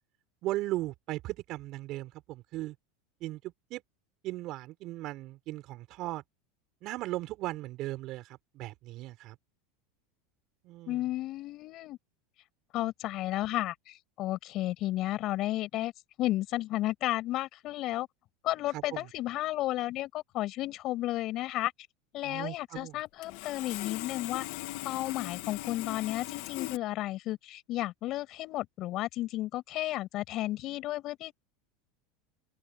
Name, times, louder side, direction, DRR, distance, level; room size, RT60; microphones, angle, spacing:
voice 1, 0.4-2.7 3.2-3.8 4.2-6.2 6.8-9.4 10.6-11.0 18.7-19.1 22.2-23.0, right 17 dB, 50° right, 6.1 m, -37 dB
voice 2, 10.9-12.0 12.7-15.9 16.2-18.1 18.4-21.7 22.1-24.4 24.8-31.3, left 15 dB, 45° left, 6.6 m, -33 dB
Sawing, 22.8-22.9 23.2-26.8, left 20 dB, 65° left, 2.5 m, -39 dB
open air
supercardioid pair, 120°, 0 cm